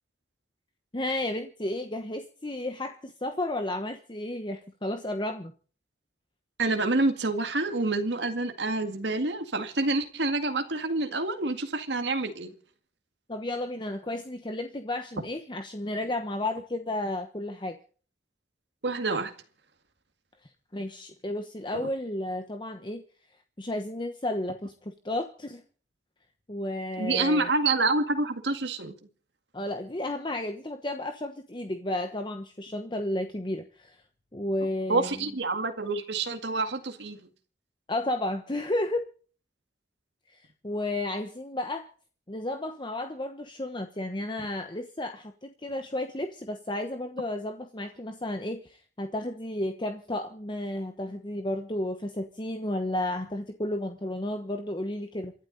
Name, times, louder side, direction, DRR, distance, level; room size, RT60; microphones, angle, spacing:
voice 1, 0.9-5.5 13.3-17.8 20.7-23.0 23.6-25.6 26.5-27.5 29.5-34.0 34.3-35.2 37.9-39.1 40.3-41.9 42.3-55.3, left 1 dB, 25° left, 1.1 m, -32 dB
voice 2, 6.6-12.5 18.8-19.3 27.0-28.9 34.9-37.2, right 3 dB, 80° right, 2.0 m, -27 dB
28.0 x 12.0 x 4.0 m
head